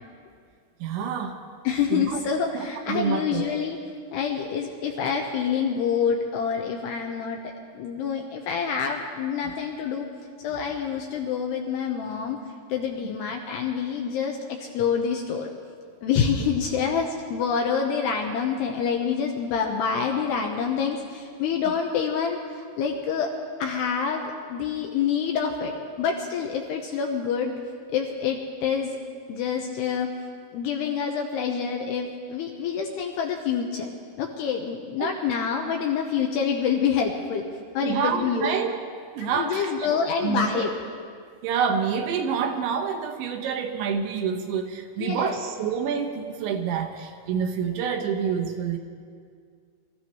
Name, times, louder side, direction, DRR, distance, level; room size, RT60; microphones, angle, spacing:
voice 1, 0.8-1.4 1.9-2.2 2.5-3.5 35.0-35.1 37.8-38.8 39.1-39.7 40.2-40.7 41.4-48.8, right 6 dB, 80° right, 3 dB, 3.0 m, -27 dB
voice 2, 1.6-3.8 4.1-7.4 7.7-10.1 10.4-12.4 12.7-15.5 16.0-23.3 23.6-25.7 26.0-27.5 27.9-29.0 29.3-30.1 30.5-33.9 34.2-37.4 37.7-38.5 39.3-40.7 45.0-45.4, left 6 dB, 75° left, 1 dB, 2.5 m, -27 dB
26.0 x 14.5 x 3.1 m, 2.1 s
omnidirectional pair, 5.6 m